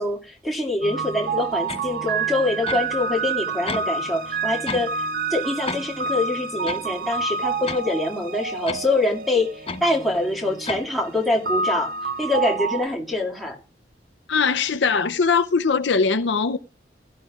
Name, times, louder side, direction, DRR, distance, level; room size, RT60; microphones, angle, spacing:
voice 1, 0.0-13.6, left 2 dB, ahead, 2.4 m, -25 dB
sound 1, 0.8-12.9, right 5 dB, 50° right, 0.4 m, -29 dB
sound 2, 1.7-1.9 2.7-2.9 3.7-3.9 4.7-4.9 5.7-5.9 6.7-6.9 7.7-7.8 8.7-8.9 9.7-9.9 10.7-10.9, left 4 dB, 30° left, 0.7 m, -31 dB
voice 2, 14.3-16.6, left 5 dB, 75° left, 0.7 m, -21 dB
16.5 x 12.0 x 2.4 m
head